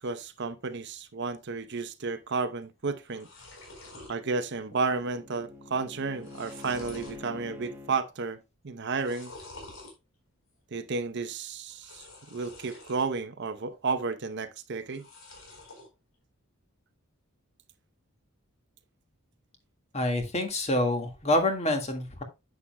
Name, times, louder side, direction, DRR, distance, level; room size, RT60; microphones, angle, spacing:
voice 1, 0.0-3.3 4.1-9.3 10.7-15.0, right 4 dB, 55° right, 0.8 m, -32 dB
sound 1, 2.6-2.7 2.9-4.2 4.6-5.0 5.3-5.4 5.9-7.2 7.7-8.1 8.9-9.9 11.7-13.1 13.5-14.1 14.8-15.9, left 2 dB, 65° left, 4.3 m, -48 dB
Bowed string instrument, 4.1-8.0, left 2 dB, 10° right, 1.3 m, -46 dB
voice 2, 19.9-22.2, left 1 dB, 30° left, 1.8 m, -27 dB
9.9 x 7.5 x 2.2 m
head